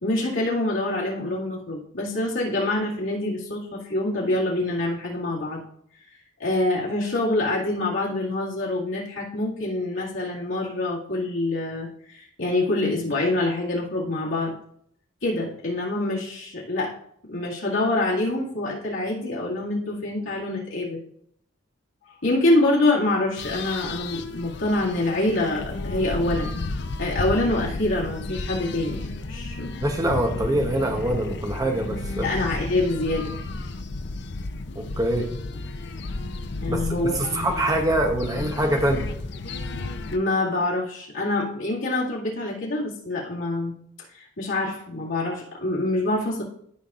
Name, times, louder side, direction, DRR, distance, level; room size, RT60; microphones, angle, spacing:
voice 1, 0.0-5.6 6.4-14.6 15.2-17.0 17.3-21.0 22.2-26.7 27.0-29.8 32.2-33.3 36.6-37.5 40.1-43.8 44.1-46.4, left 2 dB, 75° left, -6 dB, 2.1 m, -26 dB
sound 1, 23.4-40.2, left 2 dB, 55° left, 0.5 m, -33 dB
voice 2, 29.8-32.3 34.7-35.3 36.7-39.1, right 1 dB, 15° right, 4 dB, 0.8 m, -24 dB
12.5 x 5.4 x 2.5 m, 0.69 s
head